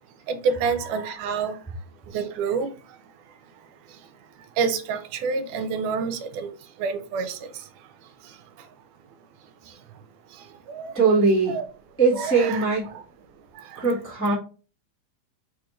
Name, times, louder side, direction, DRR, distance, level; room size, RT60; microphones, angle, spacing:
voice 1, 0.3-1.5 2.1-2.7 4.6-6.5 6.8-7.4 10.7-11.0 11.5-11.7 12.1-12.7 12.9-13.0 13.6-13.7, right 5 dB, 80° right, 7 dB, 2.1 m, -27 dB
voice 2, 10.9-11.5 12.0-12.9 13.7-14.3, right 4 dB, 15° left, -8 dB, 0.4 m, -21 dB
4.9 x 2.5 x 4.2 m, 0.36 s
omnidirectional pair, 3.7 m